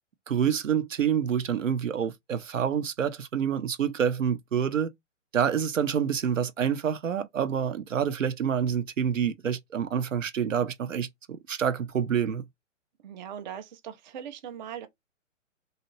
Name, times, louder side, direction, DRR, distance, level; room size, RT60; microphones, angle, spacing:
voice 1, 0.3-4.9 5.3-12.4, right 8 dB, 75° right, 0.7 m, -27 dB
voice 2, 13.0-14.9, right 9 dB, 40° right, 0.5 m, -40 dB
2.8 x 2.4 x 3.0 m
figure-of-eight pair, 125°, 38 cm